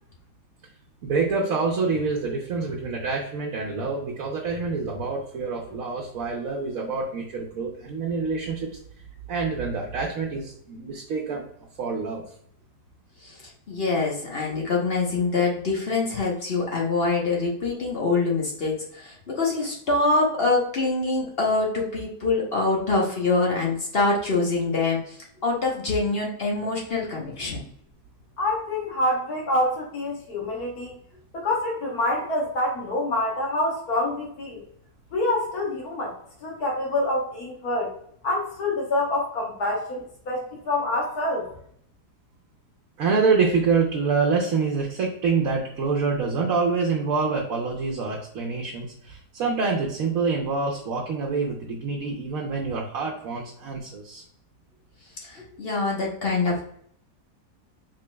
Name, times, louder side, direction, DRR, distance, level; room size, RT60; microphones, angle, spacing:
voice 1, 1.0-8.7 9.3-11.5 11.8-12.2 43.0-54.2, right 4 dB, 60° right, -1 dB, 1.1 m, -26 dB
voice 2, 13.7-25.2 25.4-27.6 55.2-56.6, left 3 dB, 45° left, -2 dB, 0.9 m, -25 dB
voice 3, 28.4-30.9 31.3-34.6 35.1-36.1 36.4-37.9 38.2-41.4, left 1 dB, 65° left, -3 dB, 1.5 m, -26 dB
5.0 x 3.7 x 2.2 m, 0.66 s
omnidirectional pair, 1.8 m